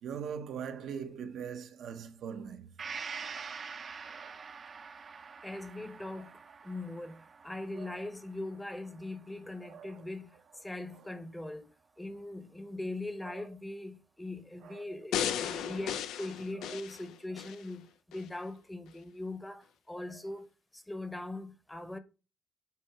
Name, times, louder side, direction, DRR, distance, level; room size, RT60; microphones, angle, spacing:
voice 1, 0.0-2.7 3.2-3.5 4.1-4.5 7.8-8.0 9.6-10.0 10.9-11.1 13.2-13.4 14.6-14.9 16.6-16.8, right 7 dB, 75° right, 0.8 m, -42 dB
Gong, 2.8-10.4 10.8-10.9, right 5 dB, 40° right, 0.6 m, -46 dB
voice 2, 5.4-11.6 12.0-20.5 20.7-22.0, left 2 dB, 10° left, 0.9 m, -41 dB
sound 1, 15.1-17.6 18.1-18.2, left 9 dB, 85° left, 0.6 m, -35 dB
8.3 x 2.8 x 5.7 m
cardioid pair, 90°, 0 cm